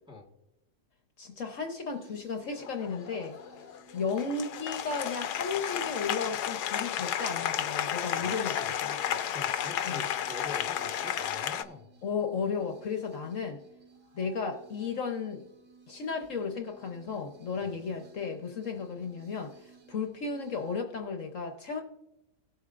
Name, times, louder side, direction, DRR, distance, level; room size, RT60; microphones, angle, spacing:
voice 1, 1.2-3.4 3.9-8.5 8.8-8.9 9.8-10.0 12.0-13.6 14.1-15.4 15.9-21.8, left 5 dB, 60° left, 4 dB, 1.2 m, -34 dB
sound 1, 1.9-20.8, right 3 dB, 75° right, 1.8 m, -59 dB
Applause, 2.5-11.6, left 10 dB, 85° left, 1.2 m, -33 dB
voice 2, 8.2-8.7 9.0-11.9 17.6-17.8, left 3 dB, 5° right, 1 dB, 1.2 m, -45 dB
18.0 x 7.8 x 2.5 m, 0.92 s
omnidirectional pair, 1.7 m